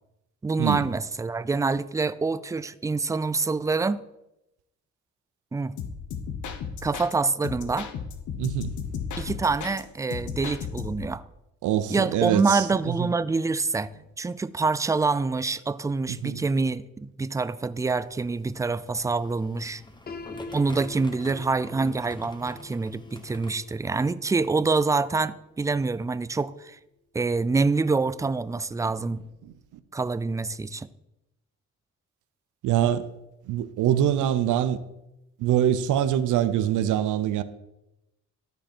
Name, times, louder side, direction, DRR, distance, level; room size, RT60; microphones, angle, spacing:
voice 1, 0.4-4.0 5.5-5.7 6.8-7.9 9.2-11.2 11.9-13.9 14.2-19.8 20.5-26.8 27.1-29.2 29.9-30.9, right 4 dB, 10° right, 0.4 m, -26 dB
sound 1, 5.8-7.1 7.4-9.8 10.1-11.1, left 6 dB, 75° left, 1.2 m, -35 dB
voice 2, 8.4-8.7 11.6-13.1 16.1-16.4 29.4-29.5 32.6-33.1 33.5-34.8 35.4-37.4, right 11 dB, 85° right, 0.6 m, -24 dB
sound 2, 18.0-23.6, left 2 dB, 15° left, 1.2 m, -46 dB
Piano, 20.1-25.9, left 3 dB, 30° left, 0.8 m, -45 dB
12.5 x 5.2 x 4.4 m
cardioid pair, 90°, 30 cm